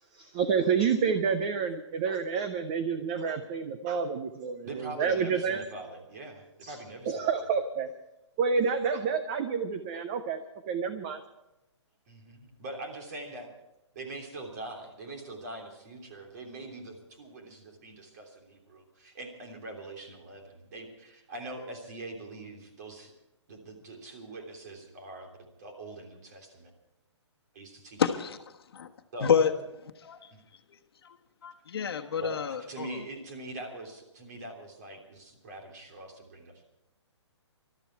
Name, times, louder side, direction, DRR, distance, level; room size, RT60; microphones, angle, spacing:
voice 1, 0.1-5.7 6.6-6.8 7.1-7.9 8.4-10.4 10.7-11.2, right 6 dB, 15° right, 9 dB, 0.5 m, -29 dB
voice 2, 4.6-7.3 12.1-13.5 13.9-23.1 23.5-26.7 27.5-28.0 29.1-29.3 30.3-30.4 32.2-32.4 32.7-36.6, right 2 dB, 35° right, 2 dB, 3.2 m, -43 dB
voice 3, 28.0-28.4 28.7-28.9 29.2-29.5 30.0-30.3 31.0-31.2 31.4-33.0, left 7 dB, 55° left, 6 dB, 1.3 m, -28 dB
21.0 x 13.0 x 4.6 m, 0.90 s
hypercardioid pair, 170°, 15 cm